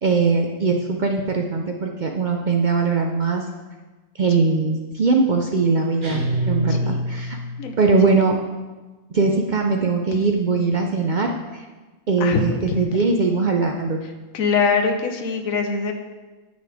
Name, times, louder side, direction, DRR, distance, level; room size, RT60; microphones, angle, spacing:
voice 1, 0.0-3.5 4.2-7.4 7.8-8.4 9.1-11.6 12.1-14.0, right 4 dB, 60° right, 2 dB, 0.5 m, -21 dB
sound 1, 6.0-7.7, right 1 dB, 35° right, 1.8 m, -25 dB
voice 2, 7.6-8.0 10.1-10.2 12.2-12.9 14.3-15.9, left 5 dB, 80° left, 5 dB, 1.2 m, -23 dB
9.3 x 6.4 x 3.4 m, 1.2 s
omnidirectional pair, 1.4 m